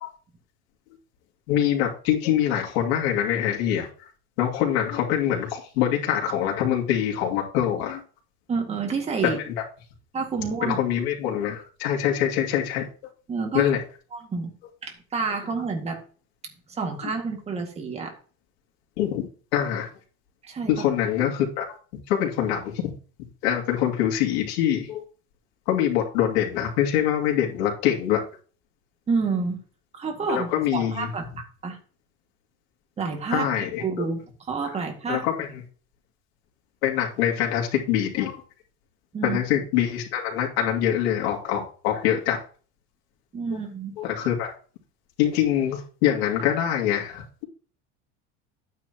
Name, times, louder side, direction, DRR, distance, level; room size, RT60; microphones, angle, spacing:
voice 1, 1.5-4.1 4.4-8.0 10.6-12.9 13.5-13.8 19.0-19.9 20.7-21.6 22.1-22.8 23.4-25.0 25.7-28.2 30.3-31.1 33.3-34.0 35.1-35.6 36.8-38.4 39.2-42.4 44.0-44.5 45.2-47.4, left 10 dB, 85° left, -1 dB, 2.7 m, -24 dB
voice 2, 8.5-9.4 10.1-10.8 13.3-13.7 14.1-14.5 14.8-16.0 16.7-18.2 20.5-20.8 29.1-29.6 29.9-31.2 31.6-31.8 33.0-33.5 33.8-35.3 39.1-39.4 43.3-43.9, right 4 dB, 20° right, 3 dB, 2.0 m, -29 dB
11.5 x 9.2 x 2.9 m, 0.40 s
cardioid pair, 160°, 31 cm